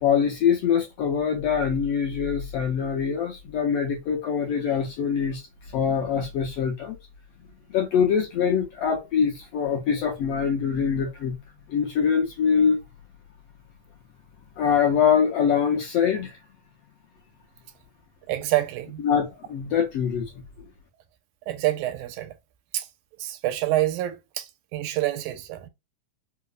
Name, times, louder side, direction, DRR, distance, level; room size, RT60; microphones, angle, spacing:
voice 1, 0.0-5.4 5.7-7.0 7.7-11.4 11.7-12.8 14.6-16.4 19.0-20.3, left 7 dB, 75° left, 1.5 m, -24 dB
voice 2, 18.3-19.0 21.5-22.3 22.7-22.9 23.2-25.7, right 15 dB, 85° right, 2.0 m, -27 dB
4.9 x 2.0 x 2.3 m
omnidirectional pair, 3.5 m